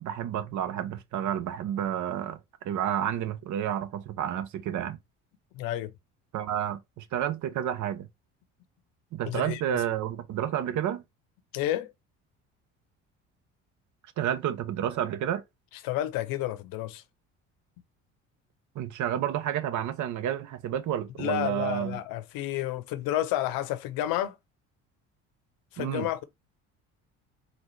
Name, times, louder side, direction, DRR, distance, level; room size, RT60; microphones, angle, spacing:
voice 1, 0.0-2.4 2.6-5.0 6.3-8.1 9.1-11.0 14.2-15.4 18.8-22.0 25.8-26.1, right 10 dB, 55° right, 0.8 m, -30 dB
voice 2, 5.5-5.9 9.2-9.8 11.5-11.9 15.8-17.0 21.2-24.4 25.7-26.2, left 13 dB, 70° left, 0.8 m, -30 dB
4.0 x 2.4 x 3.1 m
supercardioid pair, 75°, 35 cm